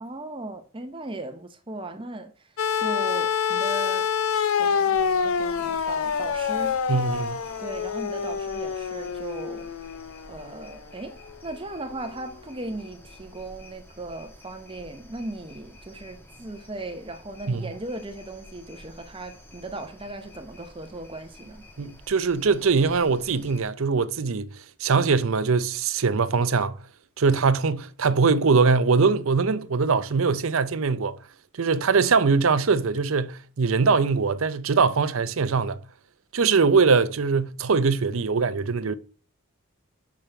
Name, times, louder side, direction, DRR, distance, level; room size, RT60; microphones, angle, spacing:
voice 1, 0.0-4.1 4.6-6.7 7.6-9.7 10.3-21.6, right 2 dB, 25° right, 0.7 m, -37 dB
sound 1, 2.6-10.7 11.9-12.0, left 6 dB, 75° left, 0.5 m, -26 dB
sound 2, 4.9-23.6, left 1 dB, 10° left, 1.3 m, -49 dB
voice 2, 6.9-7.4 17.5-17.7 21.8-24.5 24.8-26.8 27.2-31.2 31.6-35.8 36.3-38.9, right 4 dB, 70° right, 0.6 m, -22 dB
6.8 x 6.0 x 4.3 m
head